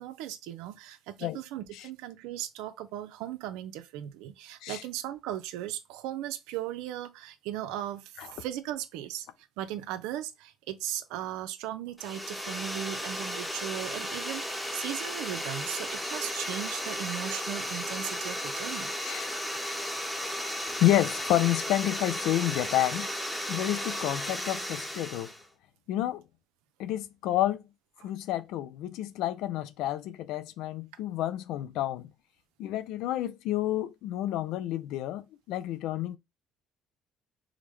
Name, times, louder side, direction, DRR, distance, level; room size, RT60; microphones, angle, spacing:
voice 1, 0.0-9.3 9.6-18.9 28.0-28.1, right 12 dB, 85° right, 0.5 m, -37 dB
sound 1, 12.0-25.4, equal, 5° left, 0.9 m, -34 dB
voice 2, 19.0-19.3 20.8-23.1 23.5-25.3 25.9-26.2 26.8-27.6 28.0-32.1 32.6-36.2, left 14 dB, 80° left, 0.4 m, -29 dB
4.9 x 2.1 x 3.0 m
supercardioid pair, 80°, 0 cm